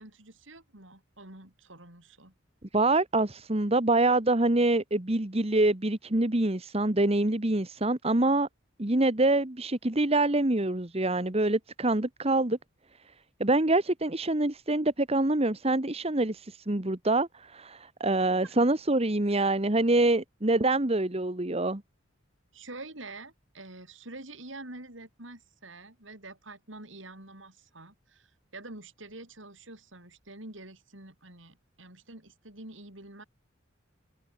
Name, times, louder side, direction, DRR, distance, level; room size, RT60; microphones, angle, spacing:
voice 1, 0.0-2.3 18.4-18.5 22.5-33.2, right 2 dB, 70° right, 7.3 m, -47 dB
voice 2, 2.7-8.5 8.8-12.6 13.4-21.8, right 2 dB, 30° right, 1.4 m, -25 dB
head